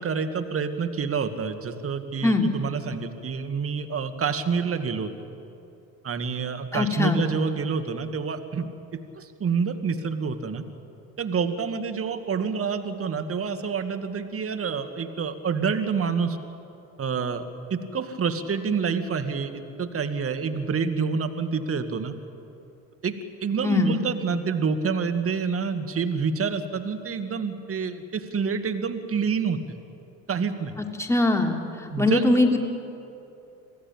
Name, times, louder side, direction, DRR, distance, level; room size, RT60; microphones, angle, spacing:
voice 1, 0.0-5.1 6.0-10.6 11.2-16.4 17.0-17.4 17.7-22.1 23.0-29.8 30.3-30.7 31.9-32.2, right 5 dB, 35° right, 8 dB, 2.0 m, -28 dB
voice 2, 6.7-7.2 23.6-24.0 30.8-31.6 32.0-32.6, left 2 dB, 5° left, 1 dB, 3.2 m, -21 dB
26.5 x 17.0 x 8.8 m, 2.7 s
hypercardioid pair, 65°, 39 cm